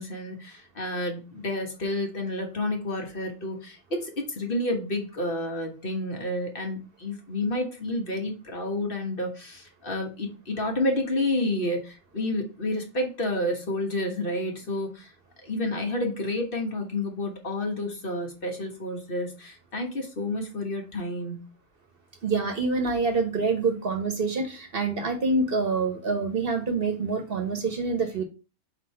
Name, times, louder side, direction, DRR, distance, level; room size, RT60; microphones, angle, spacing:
voice 1, 0.0-15.1 15.4-21.4, left 1 dB, 45° left, 2 dB, 1.4 m, -30 dB
voice 2, 22.2-28.2, right 3 dB, 50° right, 5 dB, 1.2 m, -26 dB
4.5 x 4.1 x 5.6 m, 0.32 s
omnidirectional pair, 1.3 m